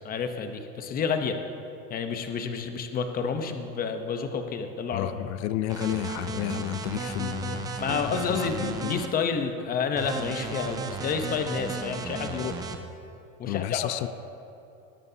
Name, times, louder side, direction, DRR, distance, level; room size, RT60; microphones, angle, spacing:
voice 1, 0.0-1.4 1.9-5.1 7.8-12.6 13.4-13.9, left 6 dB, 25° left, 6 dB, 0.8 m, -29 dB
voice 2, 4.9-9.0 13.5-14.1, left 13 dB, 60° left, 14 dB, 0.6 m, -32 dB
sound 1, 5.7-9.1 10.0-12.8, right 4 dB, 10° right, 0.3 m, -34 dB
19.5 x 12.5 x 2.8 m, 2.7 s
supercardioid pair, 150°, 39 cm